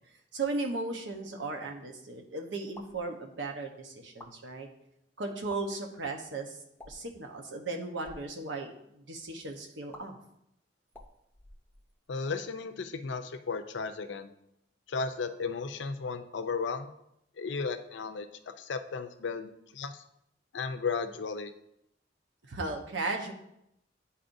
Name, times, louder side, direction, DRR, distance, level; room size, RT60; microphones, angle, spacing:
voice 1, 0.3-4.7 5.2-6.6 6.9-10.2 22.4-23.3, right 3 dB, 85° right, 3 dB, 0.9 m, -36 dB
sound 1, 2.7-3.0 4.0-4.3 5.4-5.6 6.8-7.1 7.9-8.2 9.9-10.0 10.9-12.1, left 1 dB, 10° left, 0.6 m, -50 dB
voice 2, 12.1-14.3 14.9-16.9 17.4-18.3 18.6-20.0 20.5-21.5, left 4 dB, 80° left, 9 dB, 0.5 m, -34 dB
10.0 x 4.2 x 2.6 m, 0.80 s
head